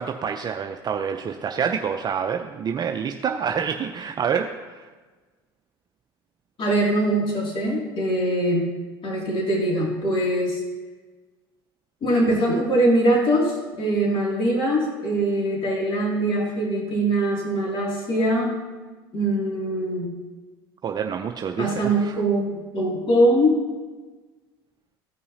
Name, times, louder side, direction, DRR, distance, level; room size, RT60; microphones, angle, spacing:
voice 1, 0.0-4.9 20.8-22.2, right 7 dB, 30° right, 4 dB, 0.5 m, -27 dB
voice 2, 6.6-8.7 9.0-10.6 12.0-18.5 19.1-20.1 21.6-23.6, right 1 dB, 40° left, -2 dB, 2.5 m, -22 dB
15.0 x 5.5 x 2.7 m, 1.3 s
hypercardioid pair, 80°, 13 cm